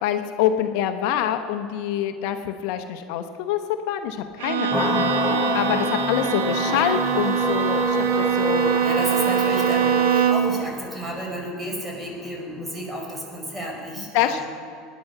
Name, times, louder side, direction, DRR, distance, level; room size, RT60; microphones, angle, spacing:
voice 1, 0.0-3.6 3.9-8.7 14.1-14.5, left 10 dB, 70° left, 7 dB, 0.9 m, -26 dB
Bowed string instrument, 4.4-10.6, right 7 dB, 80° right, 1.2 m, -23 dB
sound 1, 4.7-13.6, left 2 dB, 10° left, 0.4 m, -29 dB
voice 2, 8.8-14.5, right 1 dB, 10° right, 0 dB, 4.7 m, -32 dB
19.5 x 10.0 x 5.8 m, 2.2 s
supercardioid pair, 100°, 0 cm